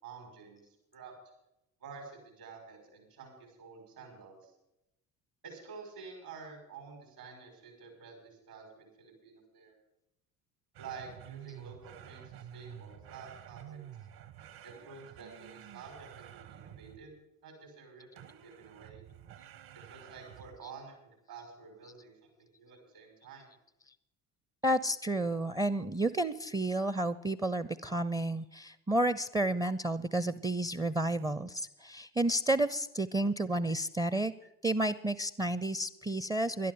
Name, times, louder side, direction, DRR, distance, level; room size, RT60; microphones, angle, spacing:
voice 1, 0.0-1.1 1.8-4.5 5.4-9.8 10.8-13.8 14.6-17.1 17.4-19.0 19.7-23.5, right 5 dB, 75° right, 1 dB, 5.6 m, -50 dB
sound 1, 10.7-17.2 18.2-20.7, right 10 dB, 55° right, 1.3 m, -50 dB
voice 2, 24.6-34.3 34.6-36.7, right 1 dB, 10° right, 16 dB, 0.5 m, -31 dB
21.0 x 11.5 x 3.8 m, 0.83 s
figure-of-eight pair, 55°, 45 cm